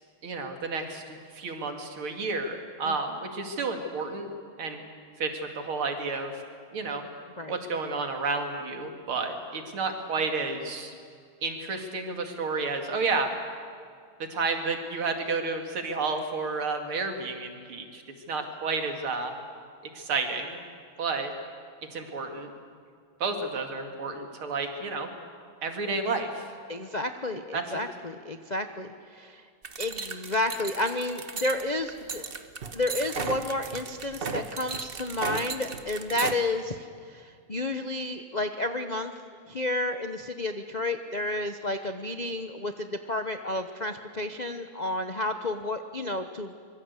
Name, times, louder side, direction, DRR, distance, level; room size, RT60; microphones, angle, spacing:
voice 1, 0.2-4.3 4.6-4.8 5.2-6.4 6.7-7.0 7.5-10.9 11.4-13.3 14.3-18.0 18.3-19.4 19.9-20.6 21.0-21.3 21.9-22.5 23.2-25.1 25.6-26.5 27.5-27.6, right 4 dB, 80° right, 5 dB, 3.1 m, -31 dB
voice 2, 26.7-29.4 29.8-32.2 32.7-39.1 39.5-46.5, left 2 dB, 85° left, 7 dB, 0.3 m, -31 dB
sound 1, 29.6-36.3, right 4 dB, 35° right, 1.1 m, -35 dB
25.0 x 22.5 x 8.3 m, 2.2 s
omnidirectional pair, 2.3 m